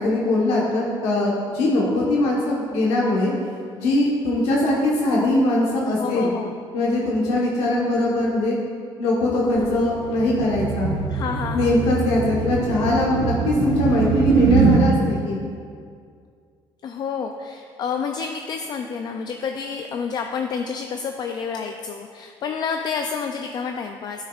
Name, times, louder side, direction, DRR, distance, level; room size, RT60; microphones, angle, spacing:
voice 1, 0.0-3.3 3.8-6.3 6.7-8.6 9.0-10.9 11.5-15.4, left 2 dB, 90° left, -4 dB, 1.2 m, -21 dB
voice 2, 6.0-6.5 11.1-11.9 16.8-24.3, left 6 dB, 45° left, 4 dB, 0.4 m, -29 dB
sound 1, 9.5-14.8, right 4 dB, 70° right, 1.1 m, -22 dB
12.5 x 6.4 x 2.4 m, 2.3 s
cardioid pair, 145°, 10 cm